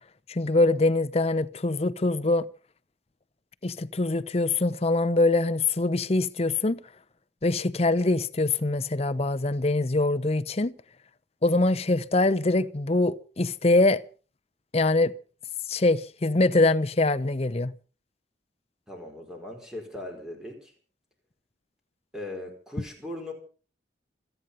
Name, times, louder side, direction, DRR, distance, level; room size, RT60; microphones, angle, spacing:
voice 1, 0.3-2.5 3.6-6.8 7.4-10.7 11.4-14.0 14.7-15.1 15.7-17.7, left 2 dB, 35° left, 0.7 m, -23 dB
voice 2, 18.9-20.7 22.1-23.3, left 1 dB, 5° right, 4.5 m, -39 dB
27.5 x 9.3 x 5.5 m
head